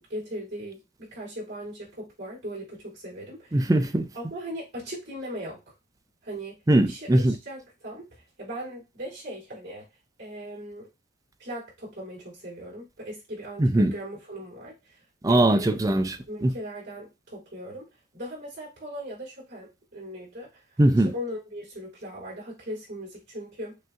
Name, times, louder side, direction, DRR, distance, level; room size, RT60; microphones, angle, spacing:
voice 1, 0.0-3.7 4.1-5.7 6.2-9.9 10.2-10.9 11.4-15.0 15.3-15.8 16.3-20.6 21.1-23.8, equal, 55° right, 3.1 m, -39 dB
voice 2, 3.5-4.1 6.7-7.4 13.6-14.0 15.2-16.6 20.8-21.1, right 1 dB, 15° right, 0.3 m, -21 dB
7.3 x 2.6 x 2.4 m
head